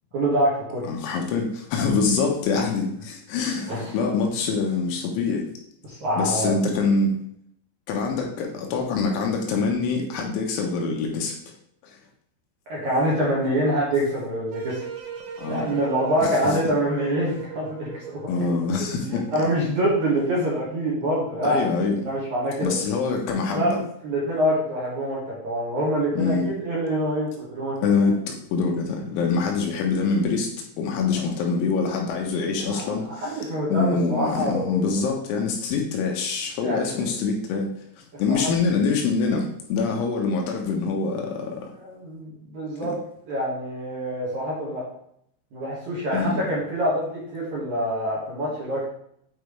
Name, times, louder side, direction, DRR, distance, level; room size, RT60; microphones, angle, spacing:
voice 1, 0.1-0.9 3.7-4.0 5.9-6.6 12.7-14.8 15.5-18.2 19.0-21.6 22.0-22.8 23.5-27.7 31.1-31.2 32.7-32.8 33.2-35.0 36.6-37.1 38.1-38.5 41.8-42.9 43.3-44.8 45.5-48.8, right 1 dB, 55° right, -6 dB, 2.3 m, -25 dB
voice 2, 0.9-5.5 6.2-7.2 7.9-11.4 11.8-12.0 15.4-15.7 16.2-16.6 18.3-19.3 21.4-22.0 22.6-23.8 26.2-26.5 27.8-33.4 33.7-37.7 38.0-41.7 42.8-42.9 46.1-46.4, left 4 dB, 80° left, 1 dB, 3.2 m, -25 dB
sound 1, 14.5-18.8, right 7 dB, 80° right, 3.5 m, -38 dB
9.2 x 4.7 x 3.3 m, 0.70 s
omnidirectional pair, 5.8 m